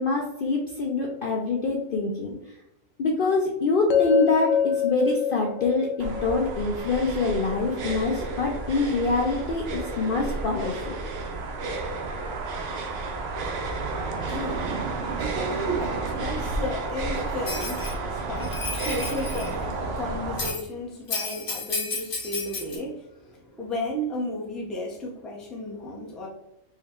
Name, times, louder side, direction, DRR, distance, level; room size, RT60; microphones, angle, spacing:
voice 1, 0.0-2.3 3.0-11.0, left 3 dB, 60° left, 0 dB, 0.6 m, -25 dB
sound 1, 3.9-8.0, left 8 dB, 75° left, 0.9 m, -27 dB
sound 2, 6.0-20.5, right 3 dB, 60° right, 0.7 m, -31 dB
voice 2, 14.3-14.7 15.2-26.3, equal, ahead, -3 dB, 0.4 m, -34 dB
Bell, 17.5-17.9 18.4-19.5 20.4-20.6 21.1-22.8, left 3 dB, 45° left, 1.1 m, -32 dB
4.5 x 2.2 x 3.5 m, 0.85 s
omnidirectional pair, 1.4 m